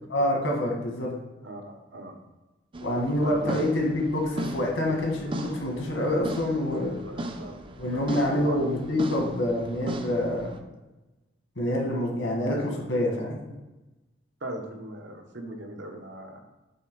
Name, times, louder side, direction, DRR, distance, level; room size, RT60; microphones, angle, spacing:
voice 1, 0.1-1.1 2.8-6.9 7.8-10.5 11.6-13.4, left 1 dB, 85° left, 0 dB, 1.8 m, -26 dB
voice 2, 1.4-2.2 3.1-3.6 6.7-8.6 12.6-13.3 14.4-16.4, right 1 dB, 70° right, 3 dB, 1.0 m, -40 dB
sound 1, 2.7-10.6, right 1 dB, 30° right, 0.5 m, -37 dB
7.6 x 3.5 x 4.7 m, 1.1 s
head